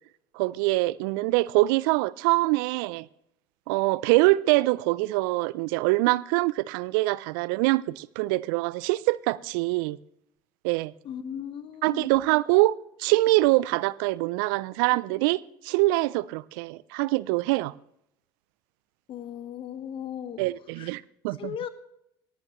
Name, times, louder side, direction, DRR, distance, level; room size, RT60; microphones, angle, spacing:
voice 1, 0.3-3.1 3.7-10.0 10.6-10.9 11.8-17.7 20.4-21.6, right 20 dB, 75° right, 0.4 m, -24 dB
voice 2, 11.0-12.1 19.1-20.4 20.8-20.9 21.4-21.7, left 9 dB, 50° left, 1.1 m, -36 dB
18.0 x 11.0 x 3.1 m
hypercardioid pair, 75°, 11 cm